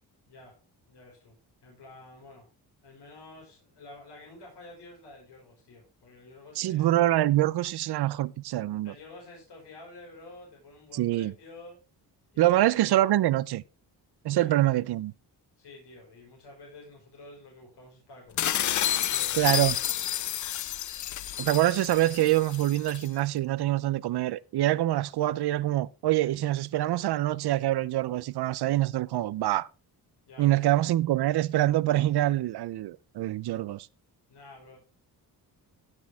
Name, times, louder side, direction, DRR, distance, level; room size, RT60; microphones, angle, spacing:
voice 1, 0.3-0.6 0.9-1.3 1.6-2.5 2.8-6.9 8.8-11.8 12.3-12.8 14.3-14.5 15.6-18.5 18.8-19.6 30.3-30.6 34.3-34.8, left 2 dB, 80° left, 5.5 m, -50 dB
voice 2, 6.6-8.9 10.9-11.3 12.4-13.6 14.2-15.1 19.3-19.8 21.4-29.7 30.4-33.9, right 15 dB, 75° right, 0.6 m, -25 dB
sound 1, 18.4-23.1, left 11 dB, 50° left, 0.5 m, -30 dB
16.0 x 6.3 x 3.5 m
cardioid pair, 130°, 40 cm